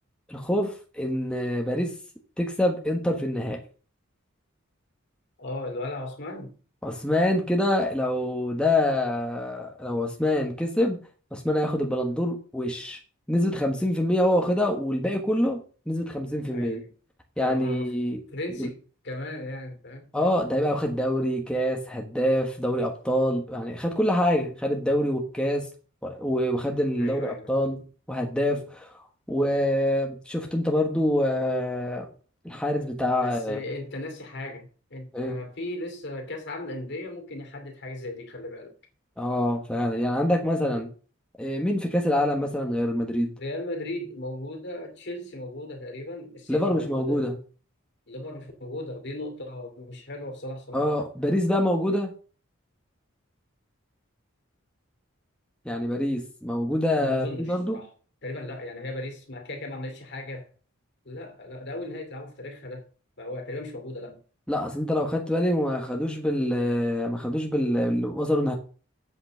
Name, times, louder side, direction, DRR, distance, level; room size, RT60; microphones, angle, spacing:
voice 1, 0.3-1.9 2.4-3.6 6.8-11.0 11.3-13.0 13.3-15.6 15.9-16.8 17.4-18.2 18.6-18.7 20.1-25.7 26.0-28.9 29.3-32.1 32.4-33.6 35.1-35.4 39.2-40.9 41.4-43.3 46.5-47.4 50.7-52.1 55.6-57.8 64.5-68.5, left 1 dB, 5° left, 1.3 m, -25 dB
voice 2, 5.4-6.6 16.5-16.9 17.4-17.9 18.3-18.7 19.0-20.1 27.0-27.5 33.2-38.7 43.4-47.3 48.1-50.9 57.0-57.9 58.2-60.5 61.0-62.8 63.2-64.2, left 1 dB, 55° left, 2.5 m, -36 dB
8.1 x 5.6 x 6.5 m
head